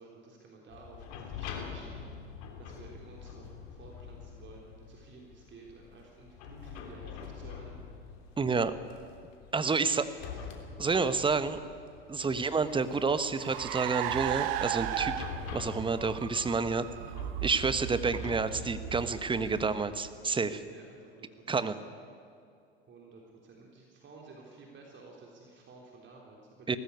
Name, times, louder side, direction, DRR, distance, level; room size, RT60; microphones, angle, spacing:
voice 1, 0.0-2.1 2.6-7.9 9.7-10.5 20.7-21.7 22.9-26.8, right 3 dB, 35° right, -1 dB, 3.6 m, -53 dB
sound 1, 0.7-20.5, left 6 dB, 55° left, 3.4 m, -46 dB
voice 2, 8.4-8.7 9.5-10.0 10.8-11.6 12.1-15.1 15.5-16.9 17.4-20.6 21.5-21.7 26.7-26.8, right 4 dB, 15° right, 12 dB, 1.2 m, -29 dB
Car, 12.3-20.1, right 13 dB, 60° right, 1.2 m, -37 dB
18.5 x 14.5 x 9.7 m, 2.4 s
hypercardioid pair, 80°, 31 cm